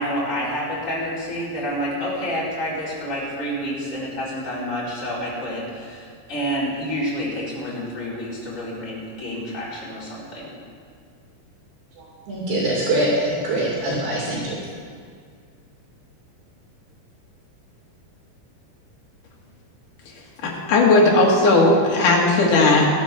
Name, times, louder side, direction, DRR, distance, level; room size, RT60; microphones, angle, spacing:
voice 1, 0.0-10.5, equal, 15° left, -8 dB, 4.5 m, -28 dB
voice 2, 12.0-14.6, right 1 dB, 70° right, -5 dB, 4.8 m, -23 dB
voice 3, 20.4-22.9, left 2 dB, 50° left, -2 dB, 3.2 m, -16 dB
15.5 x 9.2 x 7.0 m, 2.1 s
omnidirectional pair, 5.2 m